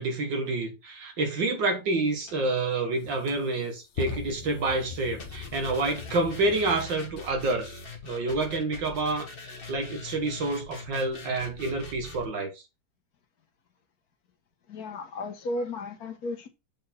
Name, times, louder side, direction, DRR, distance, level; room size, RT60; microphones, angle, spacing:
voice 1, 0.0-12.6, right 2 dB, 80° right, 2.4 m, -28 dB
sound 1, 2.3-2.4 3.0-7.3, left 6 dB, 90° left, 1.7 m, -40 dB
sound 2, 5.2-12.2, left 3 dB, 30° left, 1.5 m, -43 dB
voice 2, 14.7-16.5, left 2 dB, 60° left, 1.4 m, -34 dB
7.5 x 4.3 x 4.4 m
omnidirectional pair, 2.0 m